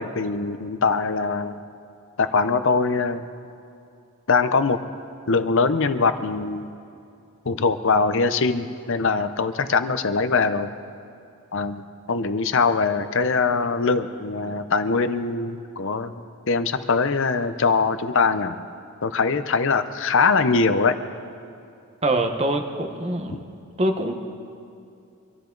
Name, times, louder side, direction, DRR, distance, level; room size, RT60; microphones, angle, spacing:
voice 1, 0.0-1.6 2.2-3.2 4.3-4.8 5.3-6.7 7.5-10.7 11.5-16.1 16.5-18.6 19.0-21.0 23.3-23.4, left 4 dB, 60° left, 11 dB, 0.7 m, -22 dB
voice 2, 22.0-24.2, right 1 dB, 30° right, 5 dB, 1.1 m, -25 dB
25.0 x 13.5 x 3.9 m, 2.5 s
head